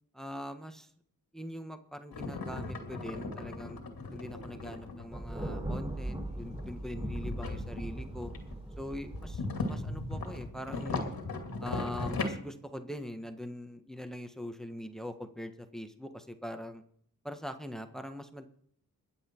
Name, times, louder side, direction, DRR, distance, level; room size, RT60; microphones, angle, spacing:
voice 1, 0.1-0.9 1.3-3.8 4.1-8.3 8.8-11.1 11.6-16.8 17.2-18.5, left 1 dB, ahead, 8 dB, 1.4 m, -42 dB
sound 1, 2.1-5.1 6.3-8.6 9.0-12.3, left 3 dB, 80° left, 2.4 m, -38 dB
Thunder, 5.1-10.5, right 1 dB, 15° right, 5.8 m, -39 dB
22.5 x 7.6 x 4.5 m, 0.63 s
cardioid pair, 55°, 36 cm